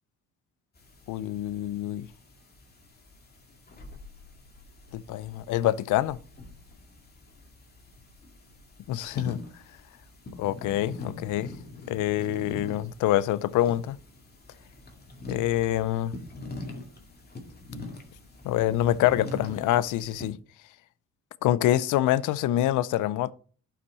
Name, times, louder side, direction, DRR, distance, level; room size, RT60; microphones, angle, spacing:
sound 1, 0.8-20.3, left 2 dB, 30° left, 2.2 m, -44 dB
voice 1, 1.1-2.1 4.9-6.2 8.9-9.4 10.4-11.5 11.9-14.0 15.3-16.1 18.4-20.4 21.4-23.3, left 13 dB, 80° left, 0.5 m, -26 dB
11.5 x 5.9 x 4.0 m
cardioid pair, 90°, 30 cm